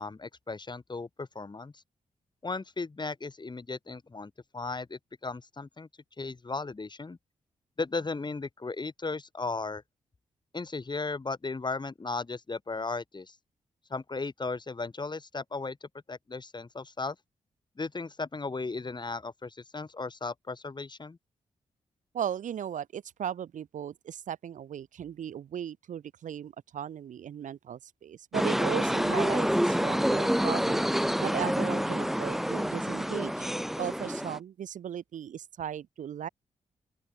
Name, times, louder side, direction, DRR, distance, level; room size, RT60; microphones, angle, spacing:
voice 1, 0.0-1.7 2.4-5.9 6.2-7.2 7.8-9.8 10.5-13.3 13.9-17.1 17.8-21.2, left 3 dB, 35° left, 1.7 m, -36 dB
voice 2, 22.1-30.8 31.2-33.5 33.8-36.3, right 9 dB, 75° right, 0.8 m, -37 dB
sound 1, 28.3-34.4, equal, ahead, 0.8 m, -28 dB
sound 2, 28.6-34.2, left 6 dB, 65° left, 4.6 m, -61 dB
open air
supercardioid pair, 50°, 13 cm